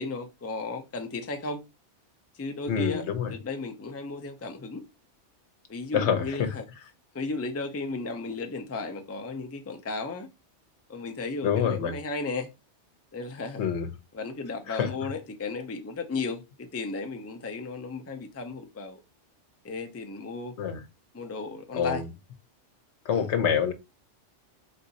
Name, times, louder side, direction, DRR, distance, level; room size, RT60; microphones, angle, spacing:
voice 1, 0.0-1.6 2.3-3.0 3.3-4.8 5.7-6.6 7.1-10.3 10.9-12.5 13.1-13.7 14.1-19.0 19.6-20.5 21.1-22.0 23.1-23.3, left 3 dB, 20° left, 0.4 m, -34 dB
voice 2, 2.7-3.3 5.9-6.5 11.4-12.0 13.6-13.9 14.7-15.1 20.6-20.8 21.7-22.1 23.0-23.7, left 7 dB, 70° left, 1.0 m, -26 dB
4.2 x 2.6 x 4.0 m
omnidirectional pair, 1.2 m